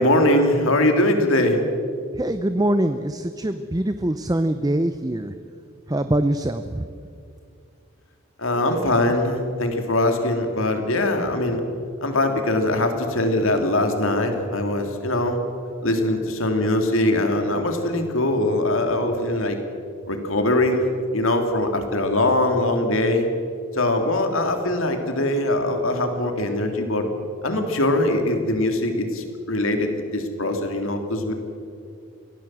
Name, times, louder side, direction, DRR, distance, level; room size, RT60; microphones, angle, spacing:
voice 1, 0.0-1.6 8.4-11.6 12.0-15.4 15.8-19.6 20.1-20.9 21.1-23.3 23.7-27.1 27.4-31.3, left 1 dB, 75° left, 5 dB, 2.9 m, -22 dB
voice 2, 2.1-5.3 5.9-6.9, right 1 dB, 15° right, 10 dB, 0.6 m, -23 dB
25.0 x 17.0 x 7.6 m, 2.4 s
head